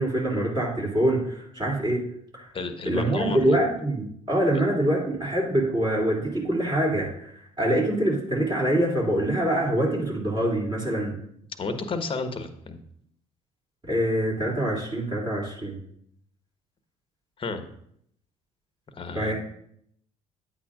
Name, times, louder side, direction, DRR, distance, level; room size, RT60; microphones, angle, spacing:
voice 1, 0.0-2.1 2.3-2.5 2.9-11.2 13.9-15.8 19.1-19.3, right 1 dB, 25° right, -4 dB, 2.9 m, -25 dB
voice 2, 2.5-3.6 11.6-12.8 17.4-17.6 19.0-19.3, left 3 dB, 30° left, 8 dB, 1.1 m, -32 dB
9.7 x 8.5 x 2.5 m, 0.69 s
hypercardioid pair, 55°, 18 cm